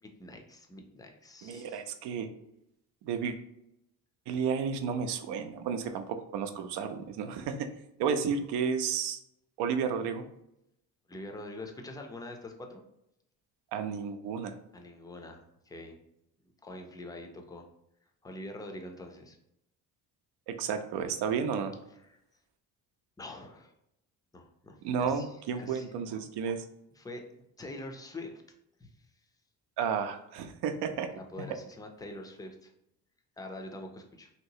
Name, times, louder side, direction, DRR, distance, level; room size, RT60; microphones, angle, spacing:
voice 1, 0.0-1.9 11.1-12.8 14.7-16.0 16.6-17.7 18.2-19.4 22.0-22.2 23.2-23.7 24.3-25.3 25.6-25.9 27.0-27.2 27.6-28.4 28.8-28.9 31.1-32.7 33.4-34.3, left 1 dB, 10° left, 3 dB, 0.4 m, -44 dB
voice 2, 1.4-2.3 3.0-3.4 4.3-6.0 6.3-7.7 8.0-9.2 9.6-10.3 13.7-14.5 20.5-21.7 24.8-26.6 29.8-31.1, right 6 dB, 80° right, 7 dB, 0.6 m, -32 dB
3.2 x 2.9 x 2.7 m, 0.81 s
cardioid pair, 105°, 40 cm